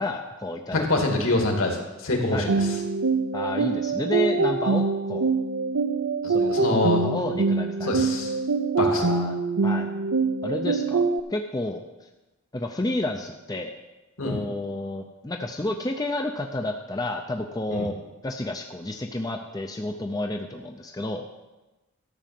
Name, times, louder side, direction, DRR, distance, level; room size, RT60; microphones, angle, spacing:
voice 1, 0.0-0.9 2.3-2.5 3.3-5.3 6.3-8.1 8.8-9.9 10.4-11.8 12.5-13.7 14.2-18.0 18.2-21.3, left 1 dB, 15° left, 4 dB, 0.5 m, -31 dB
voice 2, 0.7-2.7 6.2-7.0 7.8-8.3 8.8-9.1 14.2-14.4 17.7-17.9, left 2 dB, 65° left, 2 dB, 2.3 m, -25 dB
sound 1, 2.5-11.2, right 4 dB, 85° right, 0.7 m, -24 dB
13.0 x 6.2 x 7.6 m, 1.1 s
head